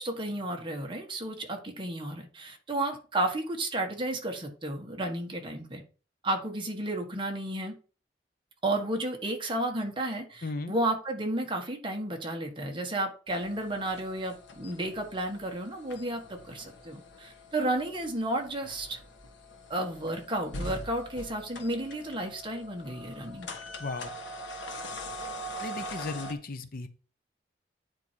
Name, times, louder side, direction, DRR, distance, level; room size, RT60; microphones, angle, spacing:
voice 1, 0.0-5.8 6.2-7.7 8.6-19.0 19.7-23.5, right 1 dB, 30° right, 1.5 m, -32 dB
voice 2, 10.4-10.7 23.8-24.2 25.6-26.9, left 3 dB, 55° left, 0.8 m, -36 dB
sound 1, 13.3-26.3, equal, 90° left, 1.5 m, -43 dB
9.6 x 4.7 x 4.6 m
head